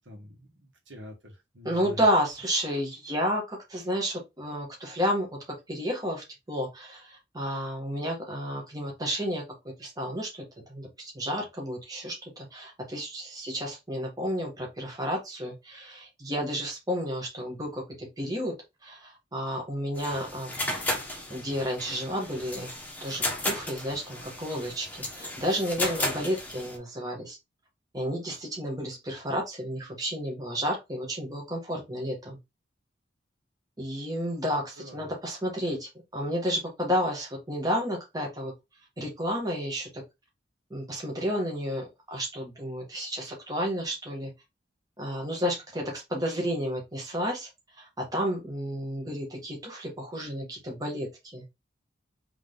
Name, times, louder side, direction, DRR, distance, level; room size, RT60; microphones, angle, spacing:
voice 1, 0.0-2.0 2.7-2.8 20.5-21.1 34.8-35.1, left 1 dB, 70° right, 1.7 m, -47 dB
voice 2, 1.6-18.5 18.8-20.5 21.3-22.7 23.0-27.4 27.9-32.4 33.8-38.5 39.0-40.0 40.7-44.3 45.0-47.5 47.8-51.4, equal, 20° right, 1.5 m, -31 dB
sound 1, 19.9-26.8, left 1 dB, 10° left, 1.2 m, -34 dB
3.7 x 3.3 x 3.8 m
head